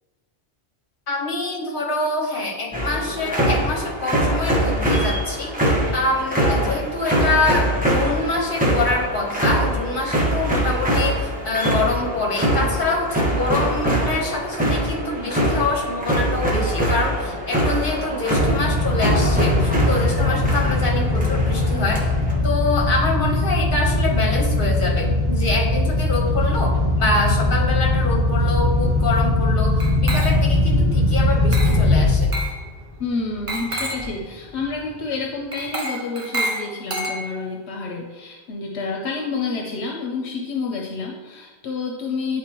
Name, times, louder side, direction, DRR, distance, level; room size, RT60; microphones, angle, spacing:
voice 1, 1.1-22.1 22.4-32.3, left 3 dB, 55° left, 0 dB, 1.4 m, -25 dB
sound 1, 2.7-22.4, right 1 dB, 10° right, 1.1 m, -23 dB
sound 2, 18.3-32.5 32.9-33.2 33.7-33.8 34.0-34.1, left 2 dB, 55° right, 1.9 m, -20 dB
Glass, 29.8-30.6 31.5-31.9 32.3-32.6 33.5-34.1 35.5-37.5, right 1 dB, 35° right, 0.8 m, -29 dB
voice 2, 33.0-42.4, left 4 dB, 80° left, 0 dB, 0.9 m, -29 dB
10.0 x 3.9 x 2.9 m, 1.4 s
omnidirectional pair, 1.1 m